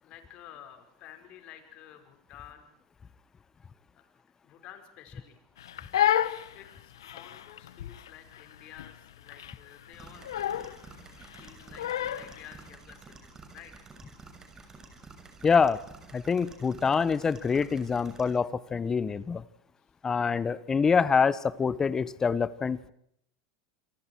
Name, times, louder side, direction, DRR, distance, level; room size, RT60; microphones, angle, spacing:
voice 1, 0.0-2.7 4.4-5.4 6.5-10.9 11.4-13.7, left 10 dB, 50° left, 6 dB, 5.2 m, -51 dB
Crying sobbing, 5.6-12.4, left 11 dB, 85° left, 1.1 m, -31 dB
sound 1, 9.9-18.3, right 4 dB, 25° right, 6.4 m, -50 dB
voice 2, 15.4-15.8 16.1-19.4 20.0-22.9, left 5 dB, 25° left, 18 dB, 1.1 m, -25 dB
27.5 x 24.0 x 4.6 m, 0.70 s
hypercardioid pair, 95°, 2 cm